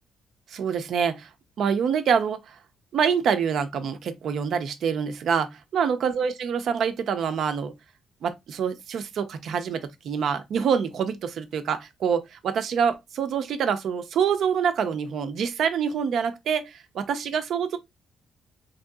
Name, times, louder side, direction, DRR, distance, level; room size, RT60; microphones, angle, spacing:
voice 1, 0.5-1.3 1.6-2.6 2.9-7.8 8.2-17.8, right 7 dB, 65° right, 0.6 m, -26 dB
3.6 x 2.7 x 2.2 m
cardioid pair, 90°, 0 cm